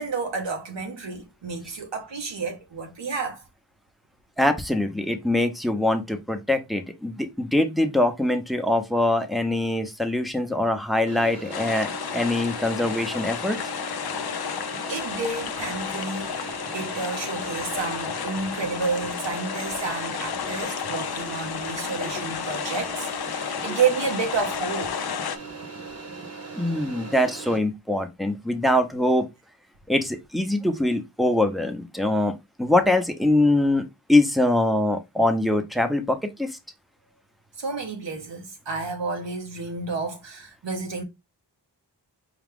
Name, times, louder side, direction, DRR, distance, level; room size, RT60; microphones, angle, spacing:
voice 1, 0.0-3.4 14.9-25.1 37.6-41.0, right 4 dB, 80° right, 0.9 m, -30 dB
voice 2, 4.4-13.6 22.0-22.1 26.5-29.3 29.9-36.6, left 1 dB, ahead, 0.7 m, -23 dB
sound 1, 11.1-27.6, right 4 dB, 35° right, 0.9 m, -39 dB
sound 2, 11.5-25.4, left 8 dB, 60° left, 0.5 m, -32 dB
4.9 x 2.3 x 3.5 m
wide cardioid pair, 65°, 43 cm